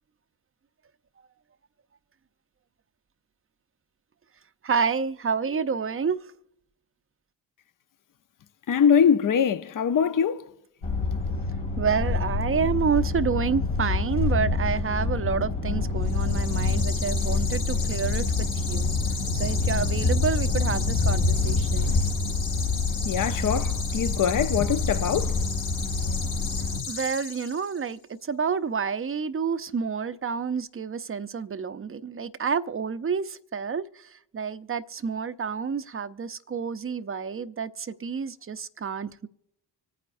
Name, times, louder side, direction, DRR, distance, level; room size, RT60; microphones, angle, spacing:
voice 1, 4.6-6.2 11.8-18.9 19.3-21.9 26.9-39.3, right 6 dB, 25° right, 0.7 m, -29 dB
voice 2, 8.7-10.5 23.0-25.4, left 7 dB, 40° left, 0.8 m, -23 dB
sound 1, 10.8-26.8, left 3 dB, 65° left, 2.6 m, -26 dB
sound 2, 16.0-27.9, left 4 dB, 85° left, 4.9 m, -36 dB
25.5 x 9.2 x 2.6 m
hypercardioid pair, 45°, 50 cm